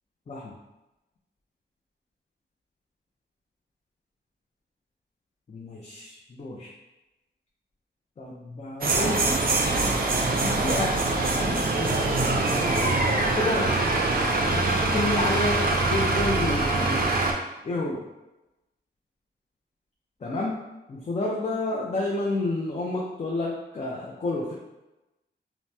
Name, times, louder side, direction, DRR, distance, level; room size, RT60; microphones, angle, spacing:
voice 1, 5.5-6.7 8.2-9.4 10.4-13.8 14.4-17.1 17.6-18.1 20.2-20.6 20.9-24.5, left 2 dB, 35° left, -3 dB, 0.4 m, -30 dB
sound 1, 8.8-17.3, right 2 dB, 50° right, 0.4 m, -24 dB
2.8 x 2.0 x 3.3 m, 0.99 s
wide cardioid pair, 145°, 19 cm